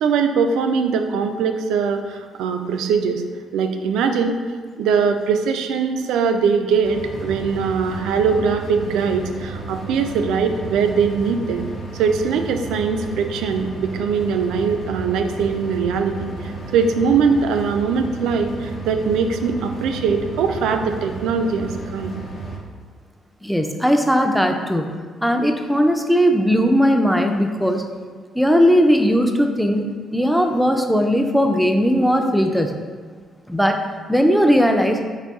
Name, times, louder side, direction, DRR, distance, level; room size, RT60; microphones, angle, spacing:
voice 1, 0.0-3.2 3.5-4.4 4.8-22.2, right 5 dB, 85° right, 6 dB, 0.3 m, -21 dB
sound 1, 6.8-22.6, right 2 dB, 55° left, 0.7 m, -33 dB
voice 2, 23.4-27.8 28.4-29.8 30.1-32.8 33.5-33.8 34.1-35.0, equal, ahead, 4 dB, 0.4 m, -18 dB
4.0 x 2.6 x 3.5 m, 1.5 s
cardioid pair, 90°, 0 cm